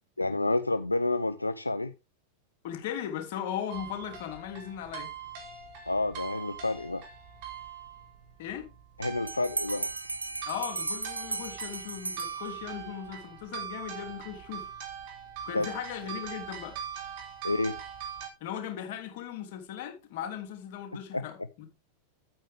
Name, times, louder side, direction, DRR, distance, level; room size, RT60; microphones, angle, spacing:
voice 1, 0.2-1.9 5.9-7.0 9.0-9.9 15.5-15.7 17.4-17.8 21.1-21.2, left 2 dB, 85° left, 0.5 m, -29 dB
voice 2, 2.6-5.1 8.4-8.7 10.4-14.7 15.4-16.8 18.4-21.7, left 9 dB, 50° left, 3.1 m, -38 dB
sound 1, 3.7-18.3, right 8 dB, 50° right, 4.1 m, -42 dB
Bell, 9.3-12.9, right 3 dB, 80° right, 0.8 m, -36 dB
9.8 x 8.9 x 3.5 m
figure-of-eight pair, 90°, 0 cm